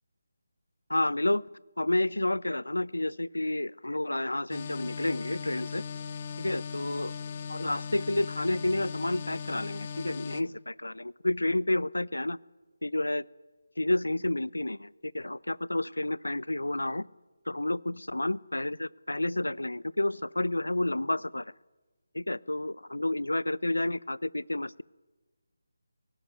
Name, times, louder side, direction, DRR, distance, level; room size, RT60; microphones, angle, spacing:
voice 1, 0.9-1.5 1.8-5.8 6.4-7.1 7.5-12.4 12.8-13.3 13.8-17.1 17.5-21.5 22.1-24.8, left 1 dB, 80° left, 22 dB, 0.6 m, -30 dB
sound 1, 4.5-10.4, left 6 dB, 35° left, 0.9 m, -38 dB
18.0 x 18.0 x 9.3 m, 1.2 s
figure-of-eight pair, 155°, 0 cm